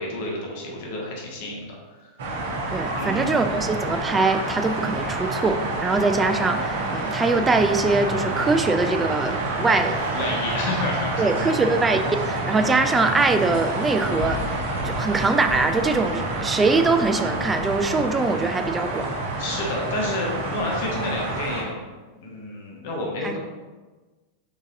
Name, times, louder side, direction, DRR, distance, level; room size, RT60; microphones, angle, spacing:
voice 1, 0.0-1.7 3.0-3.3 10.1-11.5 19.4-21.8 22.2-23.4, left 2 dB, 50° left, -2 dB, 1.1 m, -30 dB
sound 1, 2.2-21.6, right 2 dB, 55° right, 0.8 m, -28 dB
voice 2, 2.7-10.0 11.2-14.4 14.8-19.1 23.2-23.4, right 3 dB, 15° right, 8 dB, 0.3 m, -22 dB
5.0 x 3.8 x 2.5 m, 1.3 s
figure-of-eight pair, 90°, 0 cm